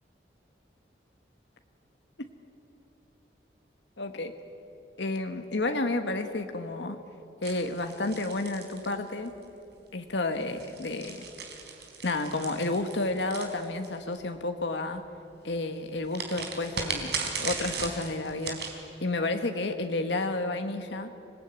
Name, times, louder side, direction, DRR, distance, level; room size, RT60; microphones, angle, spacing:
voice 1, 4.0-4.3 5.0-7.0 7.4-9.3 9.9-11.2 12.0-15.0 15.4-18.6 19.0-21.1, left 2 dB, 85° left, 6 dB, 1.3 m, -31 dB
sound 1, 7.4-9.4 10.4-14.2 16.1-18.8, right 5 dB, 70° right, 3.9 m, -37 dB
25.5 x 19.0 x 9.3 m, 2.9 s
head